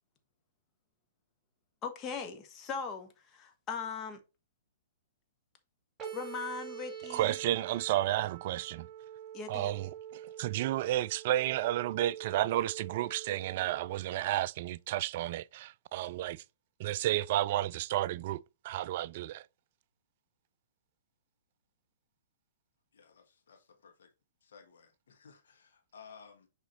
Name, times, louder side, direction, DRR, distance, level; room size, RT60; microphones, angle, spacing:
voice 1, 1.8-4.2 6.1-7.4 9.3-9.7, left 5 dB, 25° left, 1.3 m, -39 dB
sound 1, 6.0-14.0, right 10 dB, 15° right, 2.6 m, -46 dB
voice 2, 7.1-8.9 9.5-16.4 16.8-19.4, right 14 dB, 45° right, 0.3 m, -32 dB
voice 3, 22.9-24.1 24.4-26.5, left 6 dB, 65° left, 1.7 m, -56 dB
6.9 x 4.9 x 3.1 m
figure-of-eight pair, 115°, 0 cm